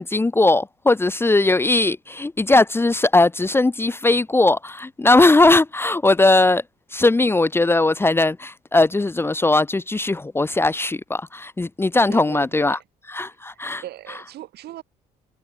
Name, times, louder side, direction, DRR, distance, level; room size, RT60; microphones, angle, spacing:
voice 1, 0.0-6.6 6.9-12.8 13.1-13.8, left 2 dB, 15° left, 1.0 m, -19 dB
voice 2, 12.1-12.8 13.5-14.8, right 14 dB, 70° right, 6.3 m, -39 dB
cardioid pair, 110°, 17 cm